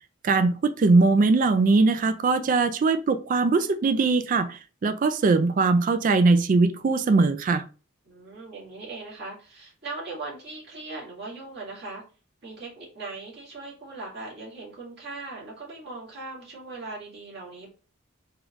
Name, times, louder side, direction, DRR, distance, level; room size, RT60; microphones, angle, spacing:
voice 1, 0.2-7.6, right 3 dB, 40° right, 0.3 m, -21 dB
voice 2, 8.1-12.0 12.4-17.7, right 3 dB, 55° right, 2.2 m, -39 dB
4.7 x 3.1 x 2.4 m
head